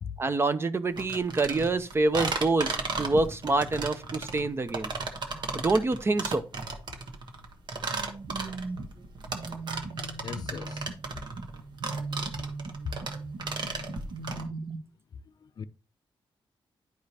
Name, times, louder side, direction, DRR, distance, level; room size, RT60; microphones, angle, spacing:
voice 1, 0.2-4.9 5.3-6.4, right 3 dB, 25° right, 0.5 m, -26 dB
sound 1, 0.9-14.4, right 3 dB, 55° right, 1.2 m, -35 dB
sound 2, 7.9-14.8, right 3 dB, 85° right, 1.2 m, -39 dB
voice 2, 10.2-10.9 12.8-13.0 13.5-14.0 15.4-15.6, left 6 dB, 45° left, 0.4 m, -39 dB
10.5 x 4.9 x 2.8 m
wide cardioid pair, 155°, 9 cm